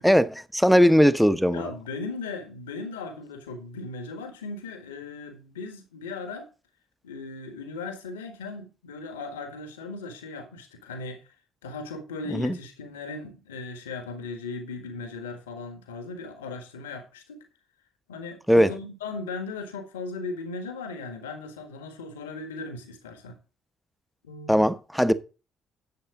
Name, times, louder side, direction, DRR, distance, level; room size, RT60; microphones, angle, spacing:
voice 1, 0.0-1.6 12.3-12.6 18.5-18.7 24.5-25.1, equal, ahead, 1.0 m, -19 dB
voice 2, 1.5-6.5 7.0-11.2 11.6-17.4 18.1-23.4 24.2-24.6, left 3 dB, 85° left, 1.7 m, -37 dB
10.5 x 7.9 x 3.8 m
hypercardioid pair, 45°, 0 cm